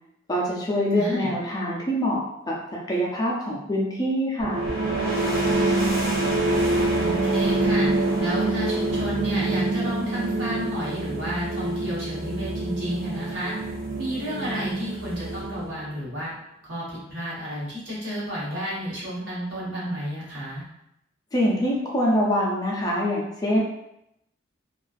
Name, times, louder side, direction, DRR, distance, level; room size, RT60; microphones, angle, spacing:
voice 1, 0.3-2.6 2.9-4.6 21.3-23.6, equal, 20° left, -4 dB, 0.4 m, -24 dB
voice 2, 1.0-1.3 7.0-7.9 8.2-13.5 14.0-16.3 16.6-20.6, equal, 65° right, -8 dB, 1.1 m, -31 dB
sound 1, 4.4-16.0, right 2 dB, 90° right, 0.7 m, -25 dB
2.3 x 2.3 x 2.4 m, 0.81 s
head